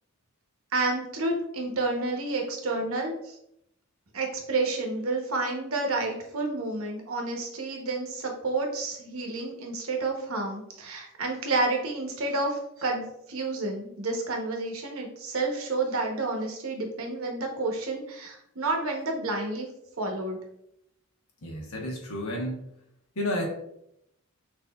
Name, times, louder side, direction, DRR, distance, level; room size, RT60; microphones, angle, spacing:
voice 1, 0.7-3.3 4.1-19.7 20.0-20.4, right 2 dB, 65° right, 2 dB, 0.9 m, -30 dB
voice 2, 21.4-22.6 23.2-23.5, left 1 dB, 75° left, -1 dB, 1.1 m, -31 dB
6.1 x 2.8 x 2.3 m, 0.76 s
head